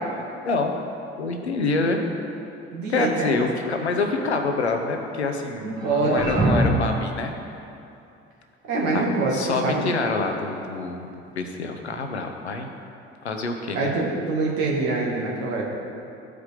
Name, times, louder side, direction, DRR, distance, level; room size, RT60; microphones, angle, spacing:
voice 1, 0.4-0.8 1.2-2.1 2.9-7.4 8.9-9.1 9.3-11.1 11.4-12.7 13.2-13.9, left 3 dB, 85° left, 4 dB, 0.7 m, -26 dB
voice 2, 2.7-3.4 5.6-6.6 8.7-9.9 13.7-15.6, right 3 dB, 60° right, -3 dB, 1.6 m, -25 dB
sound 1, 3.5-4.3 5.8-7.0, right 1 dB, 10° right, 1.8 m, -25 dB
14.0 x 4.9 x 3.3 m, 2.7 s
figure-of-eight pair, 55°, 32 cm